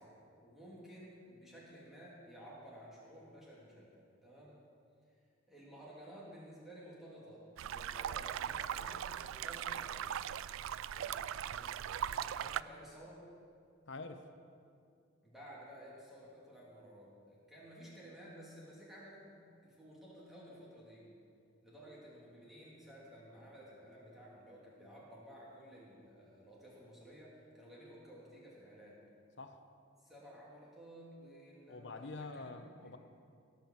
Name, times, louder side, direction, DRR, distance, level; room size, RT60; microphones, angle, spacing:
voice 1, 0.0-3.9 4.2-4.6 5.5-10.1 10.9-13.2 15.2-21.1 21.6-29.0 30.0-32.9, equal, ahead, -7 dB, 3.0 m, -54 dB
sound 1, 7.6-12.6, right 9 dB, 70° right, 0.3 m, -39 dB
voice 2, 13.9-14.3 29.4-29.6 31.7-33.0, left 3 dB, 55° left, 8 dB, 0.8 m, -46 dB
17.5 x 5.9 x 7.5 m, 2.4 s
head